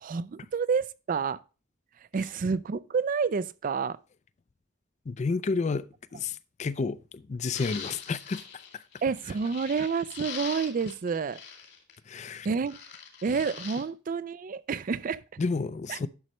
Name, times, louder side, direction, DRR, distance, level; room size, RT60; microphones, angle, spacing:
voice 1, 0.0-1.4 2.1-4.0 9.0-11.4 12.4-12.8 13.2-15.2 15.9-16.1, right 5 dB, 45° right, 0.4 m, -29 dB
voice 2, 5.1-5.9 6.1-8.4 12.1-12.5 15.4-16.1, left 4 dB, 40° left, 0.4 m, -30 dB
sound 1, 7.5-12.2 12.6-13.8, left 7 dB, 65° left, 2.4 m, -42 dB
11.0 x 6.3 x 3.0 m
head